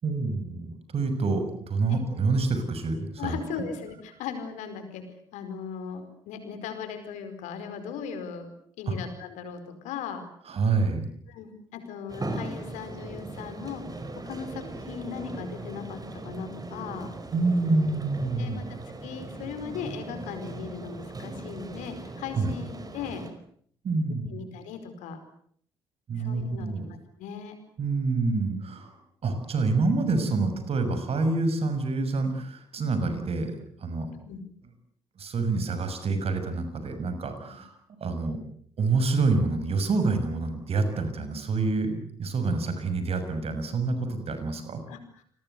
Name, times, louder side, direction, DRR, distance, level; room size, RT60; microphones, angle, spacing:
voice 1, 0.0-3.4 8.9-9.0 10.5-11.1 17.3-18.6 22.4-22.5 23.8-24.4 26.1-26.9 27.8-28.9 29.2-33.5 33.8-34.1 35.2-37.7 38.0-38.4 38.8-41.9 42.2-44.8, right 3 dB, 45° right, 9 dB, 6.6 m, -27 dB
voice 2, 3.2-5.0 5.3-8.5 8.8-10.2 11.3-17.1 18.4-18.6 19.0-23.3 24.3-25.2 26.1-27.6 34.2-34.4 44.9-45.2, left 6 dB, 65° left, 9 dB, 4.9 m, -38 dB
sound 1, 12.1-23.3, right 2 dB, 25° right, 5.3 m, -39 dB
29.0 x 22.0 x 8.2 m, 0.63 s
figure-of-eight pair, 45°, 14 cm